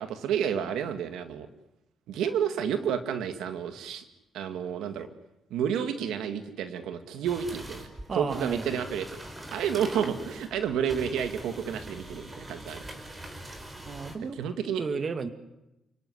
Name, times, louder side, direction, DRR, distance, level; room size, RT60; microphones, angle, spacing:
voice 1, 0.0-1.5 2.1-4.0 4.3-5.1 5.5-9.1 9.5-12.8 14.4-14.8, right 8 dB, 85° right, 8 dB, 2.1 m, -30 dB
sound 1, 7.2-14.1, right 1 dB, 25° right, 5.1 m, -43 dB
voice 2, 8.1-8.8 13.9-14.4 14.8-15.3, right 5 dB, 40° right, 9 dB, 2.1 m, -33 dB
29.5 x 18.0 x 10.0 m, 0.93 s
cardioid pair, 90°, 0 cm